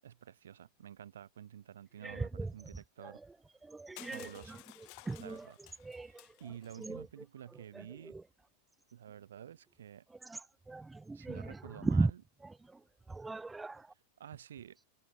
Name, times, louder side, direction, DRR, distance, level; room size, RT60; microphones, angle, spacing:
voice 1, 0.0-3.2 4.0-4.6 5.2-5.6 5.9-8.1 8.9-10.0 11.1-12.2 14.2-14.8, right 10 dB, 85° right, 6.7 m, -50 dB
voice 2, 3.7-4.3 5.1-5.4 5.9-6.1 6.9-7.0 10.7-11.4 11.8-12.1 13.1-13.8, right 3 dB, 10° right, 0.4 m, -34 dB
Crushing, 4.0-6.9, left 40 dB or more, 55° left, 5.2 m, -55 dB
hypercardioid pair, 120°, 0 cm